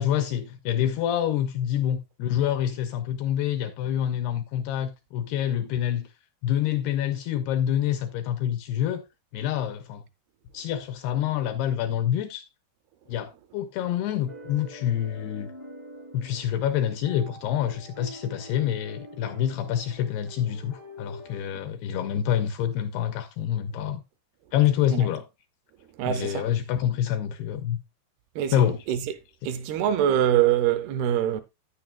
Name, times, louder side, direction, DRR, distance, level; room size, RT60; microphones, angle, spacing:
voice 1, 0.0-6.1 6.4-9.0 9.3-10.0 10.5-12.5 13.1-15.5 16.1-24.0 24.5-25.3 26.1-27.8 28.5-29.0 29.4-29.5, left 10 dB, 85° left, 2.4 m, -27 dB
sound 1, 14.2-21.5, left 1 dB, 35° right, 0.5 m, -46 dB
voice 2, 26.0-26.5 28.4-28.5 28.9-29.0 29.4-31.4, right 10 dB, 85° right, 2.3 m, -23 dB
10.5 x 9.6 x 2.2 m
omnidirectional pair, 5.3 m